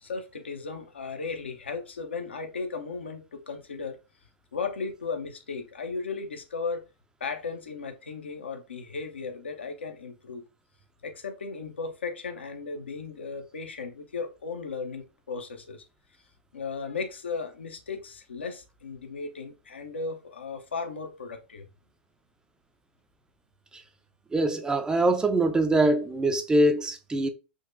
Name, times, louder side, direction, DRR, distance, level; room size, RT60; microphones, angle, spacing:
voice 1, 0.0-4.0 4.5-6.8 7.2-10.4 11.0-15.8 16.5-21.7, left 4 dB, 85° left, 0.6 m, -36 dB
voice 2, 24.3-27.3, right 1 dB, 15° right, 0.4 m, -23 dB
3.8 x 2.2 x 2.5 m
hypercardioid pair, 100°, 6 cm